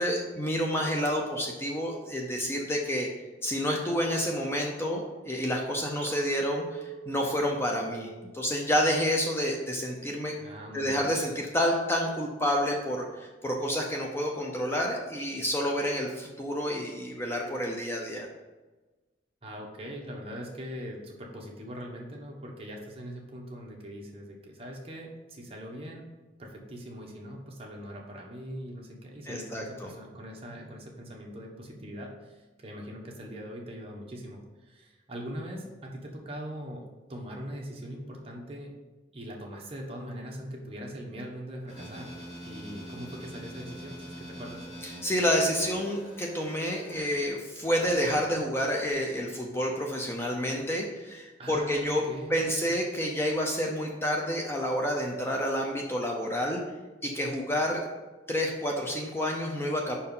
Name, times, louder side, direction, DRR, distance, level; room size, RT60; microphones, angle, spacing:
voice 1, 0.0-3.1 3.4-10.3 10.7-18.3 29.3-29.9 45.0-52.0 52.3-56.6 57.0-57.8 58.3-60.0, equal, 15° left, 0 dB, 0.6 m, -29 dB
Chink clink, 6.0-10.4 10.8-11.3, right 9 dB, 65° right, 0.7 m, -45 dB
voice 2, 10.4-11.1 19.4-26.0 26.4-36.8 37.1-38.7 39.1-42.1 42.4-44.7 51.4-52.7, equal, 30° right, -1 dB, 1.1 m, -41 dB
sound 1, 41.7-47.0, equal, 40° left, 2.3 m, -44 dB
5.4 x 4.5 x 5.4 m, 1.2 s
head